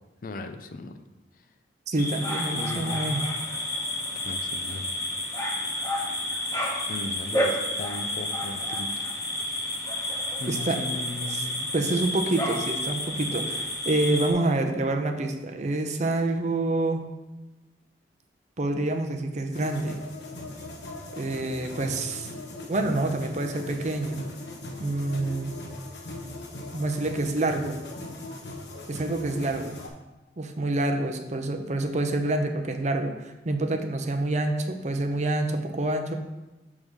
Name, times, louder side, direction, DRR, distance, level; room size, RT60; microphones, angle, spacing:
voice 1, 0.2-1.0 2.5-3.3 4.2-4.9 6.9-8.9 10.4-11.7 21.8-22.3, left 3 dB, 50° left, 8 dB, 0.5 m, -37 dB
voice 2, 1.9-3.2 10.5-10.8 11.3-11.5 11.7-17.0 18.6-20.0 21.2-22.3 22.7-24.2 24.8-25.5 26.7-27.8 28.9-29.8 30.4-36.2, right 2 dB, 40° right, 5 dB, 0.6 m, -27 dB
sound 1, 2.0-14.3, left 1 dB, 20° left, 0.9 m, -30 dB
sound 2, 19.5-29.9, left 2 dB, 70° left, 1.0 m, -40 dB
6.5 x 3.6 x 6.2 m, 1.1 s
head